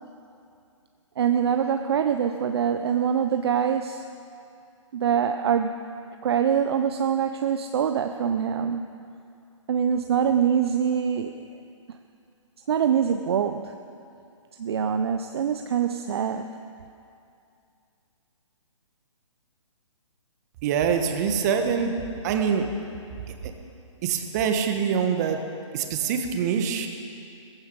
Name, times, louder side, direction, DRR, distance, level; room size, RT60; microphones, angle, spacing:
voice 1, 1.2-4.0 4.9-5.7 6.2-8.9 9.7-11.4 12.7-13.7 14.6-16.5, right 8 dB, 50° right, 7 dB, 0.7 m, -24 dB
voice 2, 20.6-21.9 22.2-22.7 24.0-25.4 25.7-26.9, right 7 dB, 30° right, 5 dB, 1.5 m, -24 dB
16.5 x 15.5 x 5.4 m, 2.5 s
figure-of-eight pair, 135°, 17 cm